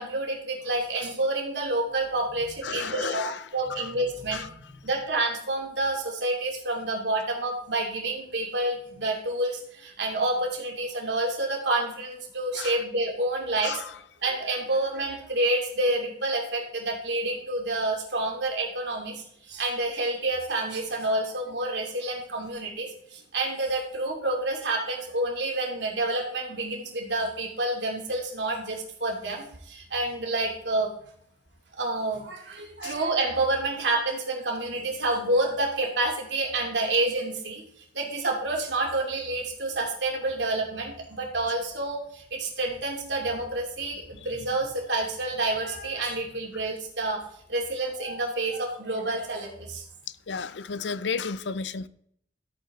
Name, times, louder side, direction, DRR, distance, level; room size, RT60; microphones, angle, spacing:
voice 1, 0.0-13.8 14.2-30.9 31.8-37.6 37.9-47.2 47.5-49.8, right 2 dB, 75° right, 0 dB, 2.8 m, -28 dB
voice 2, 2.6-3.4 3.8-3.9 4.3-4.5 12.5-12.8 13.6-13.9 32.8-32.9 50.3-51.9, left 5 dB, 75° left, 16 dB, 0.6 m, -32 dB
13.5 x 8.7 x 3.7 m, 0.68 s
head